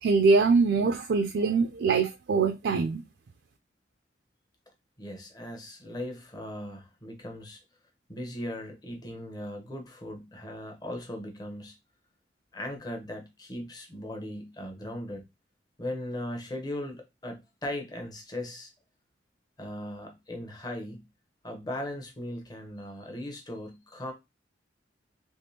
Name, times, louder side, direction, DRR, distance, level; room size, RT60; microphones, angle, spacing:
voice 1, 0.0-3.0, right 4 dB, 65° right, 0.4 m, -23 dB
voice 2, 5.0-7.6 8.1-11.7 12.5-15.2 15.8-18.7 19.6-21.0 21.4-24.1, left 1 dB, 20° left, 0.8 m, -38 dB
3.5 x 3.0 x 2.7 m
head